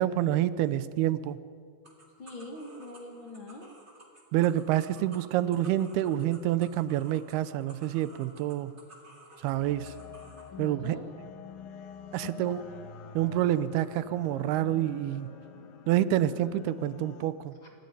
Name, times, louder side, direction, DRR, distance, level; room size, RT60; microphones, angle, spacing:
voice 1, 0.0-1.4 4.3-8.7 9.4-9.9 10.6-11.0 12.1-12.6 13.2-15.3 15.9-17.6, right 12 dB, 85° right, 16 dB, 2.7 m, -27 dB
sound 1, 1.8-10.5, right 2 dB, 20° right, 2.9 m, -54 dB
voice 2, 2.2-3.7 10.5-11.1 12.2-12.8, left 3 dB, 40° left, 2 dB, 2.0 m, -43 dB
sound 2, 9.5-17.3, left 7 dB, 70° left, 3.1 m, -47 dB
27.0 x 14.5 x 9.9 m, 2.1 s
omnidirectional pair, 4.5 m